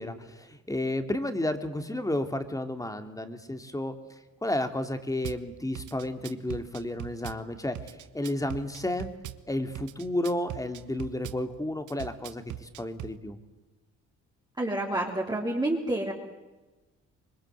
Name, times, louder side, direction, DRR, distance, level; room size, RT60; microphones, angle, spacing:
voice 1, 0.0-3.9 4.4-7.8 8.1-9.1 9.5-13.4, left 1 dB, 10° left, 8 dB, 2.7 m, -32 dB
Drum kit / Bass drum, 5.2-5.4 5.7-7.4 7.7-9.4 9.7-11.4 11.9-13.2, right 13 dB, 75° right, 1.3 m, -40 dB
voice 2, 14.6-16.1, right 1 dB, 15° right, -2 dB, 3.7 m, -28 dB
26.0 x 22.0 x 8.1 m, 1.2 s
cardioid pair, 90°, 30 cm